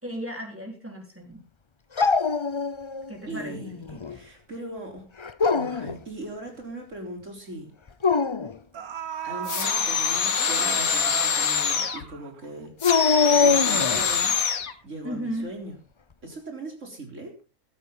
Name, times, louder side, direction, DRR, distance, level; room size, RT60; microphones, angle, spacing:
voice 1, 0.0-1.4 3.1-3.6 15.0-15.5, equal, 10° right, 2 dB, 4.1 m, -34 dB
Dog, 2.0-3.1 3.5-4.2 5.2-6.0 7.9-8.6 12.8-14.2, left 4 dB, 45° left, 0.3 m, -23 dB
voice 2, 3.3-5.0 5.5-7.7 9.2-12.7 13.3-14.4 14.8-15.8 16.2-17.3, right 1 dB, 55° right, 3 dB, 4.1 m, -39 dB
sound 1, 6.6-6.7 7.0-7.2 8.2-8.3 8.7-12.7 13.0-13.1, right 8 dB, 75° right, 1.7 m, -37 dB
sound 2, 9.4-12.0 12.8-14.7, left 6 dB, 65° left, 1.7 m, -24 dB
15.5 x 13.5 x 3.9 m, 0.32 s
omnidirectional pair, 1.6 m